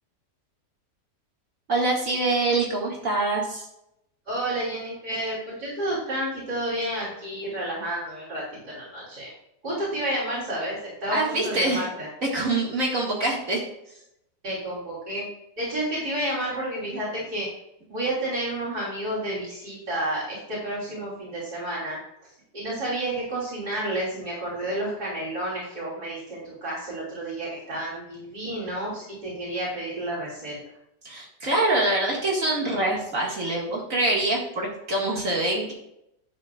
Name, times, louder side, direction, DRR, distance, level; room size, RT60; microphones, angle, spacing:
voice 1, 1.7-3.7 11.1-11.9 12.3-13.6 31.0-35.7, right 2 dB, 55° right, -2 dB, 2.4 m, -25 dB
voice 2, 4.3-9.3 9.6-12.1 14.4-15.3 15.6-17.5 17.9-22.0 22.5-30.6, right 1 dB, 70° right, -6 dB, 4.6 m, -30 dB
12.0 x 9.4 x 2.5 m, 0.80 s
omnidirectional pair, 1.8 m